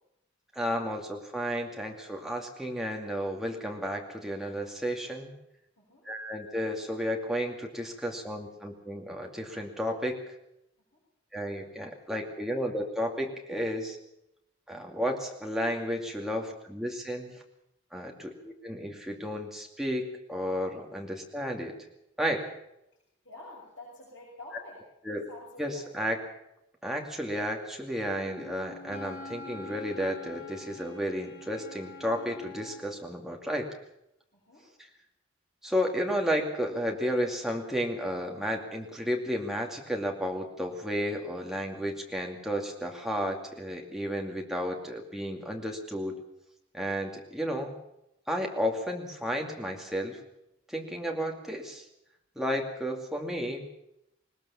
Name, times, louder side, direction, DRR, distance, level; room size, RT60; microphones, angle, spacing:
voice 1, 0.6-5.3 6.1-10.2 11.3-14.0 14.7-17.3 17.9-21.8 22.2-22.4 25.0-25.2 25.6-26.2 26.8-33.7 34.8-34.9 35.6-46.2 46.7-47.7 48.3-50.2 50.7-51.8 52.4-53.6, equal, ahead, 1 dB, 2.4 m, -32 dB
voice 2, 23.2-24.8 25.3-26.1 34.3-34.6, left 2 dB, 70° left, -5 dB, 6.6 m, -48 dB
Wind instrument woodwind instrument, 28.1-32.9, left 2 dB, 45° left, 3.5 m, -46 dB
20.0 x 19.5 x 7.2 m, 0.83 s
head